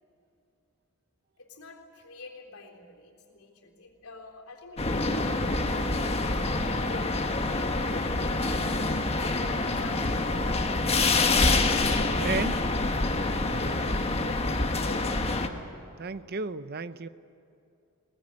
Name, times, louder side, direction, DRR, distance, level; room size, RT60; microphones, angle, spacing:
voice 1, 1.4-5.9 6.2-9.1 9.4-10.7 13.3-15.1, left 2 dB, 80° left, 0 dB, 3.7 m, -48 dB
sound 1, 4.8-15.5, left 2 dB, 25° left, 1.3 m, -26 dB
voice 2, 12.2-12.6 16.0-17.1, right 4 dB, 45° right, 13 dB, 0.6 m, -32 dB
22.0 x 19.0 x 9.9 m, 2.6 s
head